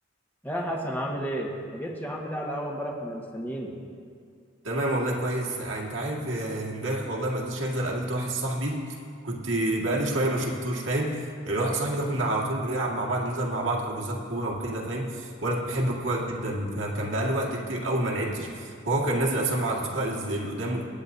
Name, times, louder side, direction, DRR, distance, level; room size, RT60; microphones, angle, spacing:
voice 1, 0.4-3.7, equal, 10° left, -1 dB, 1.5 m, -32 dB
voice 2, 4.6-8.8 9.2-20.8, right 1 dB, 75° right, -2 dB, 2.0 m, -28 dB
26.0 x 9.6 x 2.8 m, 2.2 s
head